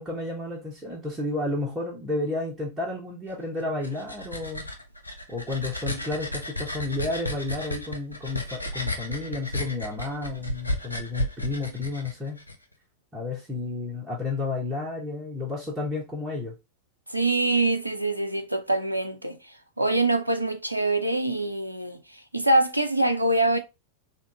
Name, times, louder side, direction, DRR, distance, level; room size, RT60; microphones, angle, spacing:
voice 1, 0.0-4.6 5.3-12.4 13.1-16.5, left 3 dB, 15° right, 1.5 m, -31 dB
sound 1, 3.6-12.6, left 1 dB, 85° left, 0.6 m, -33 dB
voice 2, 17.1-23.6, right 2 dB, 85° right, 0.4 m, -25 dB
3.6 x 2.8 x 3.6 m
figure-of-eight pair, 90°, 0 cm